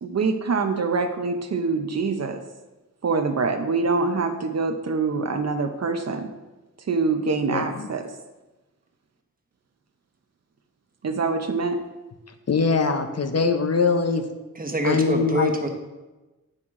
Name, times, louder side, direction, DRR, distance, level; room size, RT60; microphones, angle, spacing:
voice 1, 0.0-2.4 3.0-6.3 6.9-8.0 11.0-11.8, right 4 dB, 55° right, 7 dB, 0.7 m, -25 dB
voice 2, 7.5-7.9 12.5-14.2 14.8-15.5, left 5 dB, 50° left, 7 dB, 0.7 m, -22 dB
voice 3, 14.5-15.7, right 1 dB, 25° right, 4 dB, 1.0 m, -25 dB
8.7 x 6.4 x 3.7 m, 1.1 s
wide cardioid pair, 105°, 32 cm